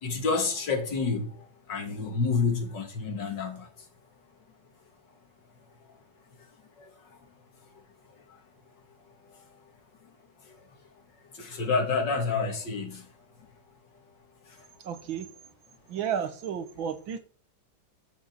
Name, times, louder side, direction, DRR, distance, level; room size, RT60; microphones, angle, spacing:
voice 1, 0.0-1.4 1.7-3.7 6.8-6.9 11.3-13.0, left 4 dB, 60° left, 2.7 m, -28 dB
voice 2, 14.8-15.3 15.9-17.2, right 8 dB, 70° right, 1.9 m, -32 dB
11.5 x 5.8 x 7.4 m
omnidirectional pair, 2.2 m